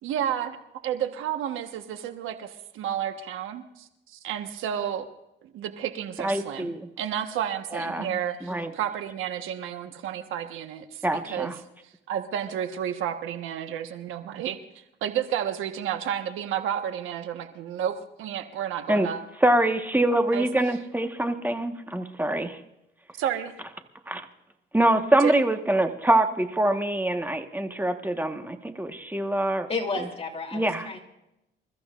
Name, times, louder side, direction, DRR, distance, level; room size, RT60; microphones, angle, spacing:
voice 1, 0.0-0.6 0.8-5.1 5.4-11.5 12.1-19.2 20.3-20.5 23.2-23.5 25.2-25.3, right 9 dB, 90° right, 7 dB, 1.3 m, -31 dB
voice 2, 6.2-6.9 7.7-8.7 11.0-11.6 18.9-19.1 19.4-22.6 24.1-24.2 24.7-29.7 30.5-30.9, right 1 dB, 10° right, 6 dB, 1.4 m, -24 dB
voice 3, 29.7-31.0, left 3 dB, 30° left, 2 dB, 3.2 m, -31 dB
27.5 x 14.0 x 2.5 m, 0.88 s
cardioid pair, 90°, 20 cm